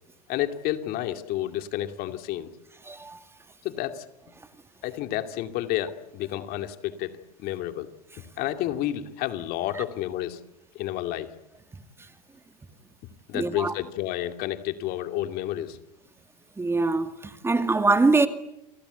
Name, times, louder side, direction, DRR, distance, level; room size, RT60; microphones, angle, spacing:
voice 1, 0.3-2.5 3.6-4.0 4.8-7.1 7.4-7.9 8.4-10.4 10.7-11.3 13.3-15.8, left 13 dB, 50° left, 2.6 m, -30 dB
voice 2, 2.8-3.2 9.7-9.8 13.3-13.7 16.6-18.3, right 3 dB, 10° right, 2.2 m, -23 dB
29.5 x 24.5 x 8.3 m
hypercardioid pair, 95°, 20 cm